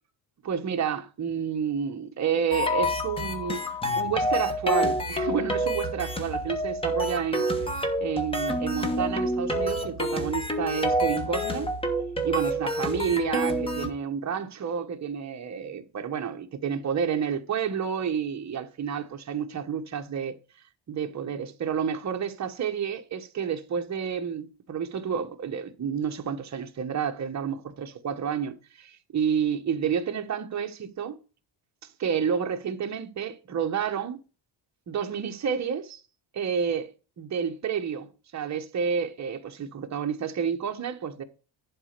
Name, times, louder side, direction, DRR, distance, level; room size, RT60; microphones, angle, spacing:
voice 1, 0.4-3.7 4.0-7.7 8.0-11.7 12.2-20.3 20.9-31.2 32.0-34.2 34.9-36.0 36.3-36.9 37.2-41.2, right 7 dB, 35° right, 1.2 m, -30 dB
sound 1, 2.5-13.9, equal, 10° left, 1.2 m, -28 dB
11.0 x 4.2 x 6.6 m
cardioid pair, 165°, 46 cm